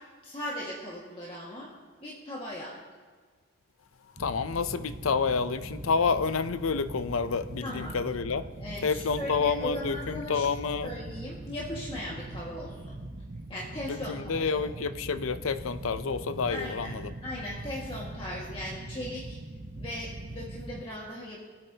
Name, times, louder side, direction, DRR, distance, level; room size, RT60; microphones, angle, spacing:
voice 1, 0.2-1.7 2.0-2.8 7.6-8.0 8.6-13.0 13.5-14.7 16.5-19.4 19.8-21.4, equal, 25° left, 1.8 m, -38 dB
voice 2, 4.2-8.4 8.8-10.9 13.9-17.1, left 5 dB, 75° left, 0.6 m, -29 dB
sound 1, 4.2-20.8, right 1 dB, 45° right, 0.9 m, -41 dB
25.0 x 8.9 x 2.9 m
head